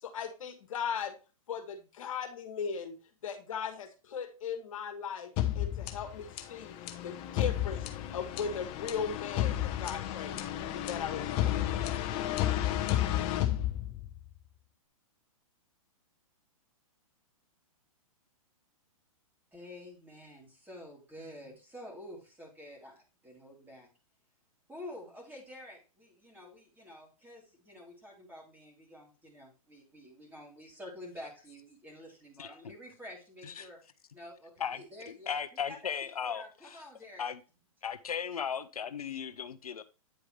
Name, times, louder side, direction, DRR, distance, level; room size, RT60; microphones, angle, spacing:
voice 1, 0.0-1.1 1.5-3.0 3.2-6.7 7.0-7.9 8.1-10.4 10.7-11.7, left 6 dB, 65° left, 1.6 m, -38 dB
sound 1, 5.4-14.3, left 12 dB, 30° left, 0.9 m, -32 dB
voice 2, 19.5-23.9 24.7-33.8 34.1-35.4 35.7-35.9 36.2-37.3, left 1 dB, 10° right, 3.3 m, -49 dB
voice 3, 34.6-36.8 37.2-37.4 37.8-39.8, left 7 dB, 90° left, 0.6 m, -37 dB
9.1 x 4.8 x 3.3 m
hypercardioid pair, 125°, 18 cm